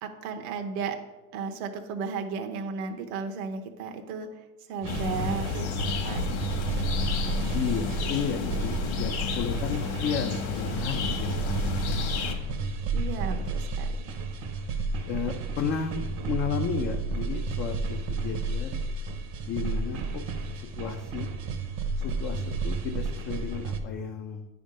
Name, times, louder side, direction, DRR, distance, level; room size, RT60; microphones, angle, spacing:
voice 1, 0.0-1.0 1.3-4.4 4.7-6.7 12.9-14.1, right 5 dB, 70° right, 4 dB, 0.9 m, -35 dB
sound 1, 4.8-23.8, right 3 dB, 45° right, 0.8 m, -32 dB
sound 2, 4.9-12.3, left 5 dB, 55° left, 1.3 m, -31 dB
voice 2, 6.2-6.6 7.5-11.8 15.0-18.8 19.5-20.2 20.8-21.3 22.0-24.5, left 7 dB, 25° left, 2 dB, 0.4 m, -33 dB
9.6 x 3.6 x 5.0 m, 1.2 s
supercardioid pair, 125°, 46 cm